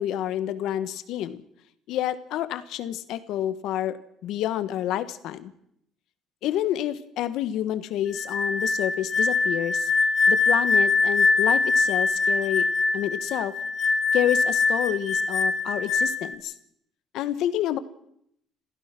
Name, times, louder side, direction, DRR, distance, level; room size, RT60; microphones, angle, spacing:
voice 1, 0.0-1.4 1.9-5.5 6.4-9.9 10.3-12.7 12.9-13.5 14.1-16.5 17.1-17.8, left 12 dB, 70° left, 13 dB, 1.4 m, -28 dB
sound 1, 8.1-16.3, left 4 dB, 40° left, 2.2 m, -23 dB
29.0 x 15.5 x 6.0 m, 0.73 s
cardioid pair, 165°, 0 cm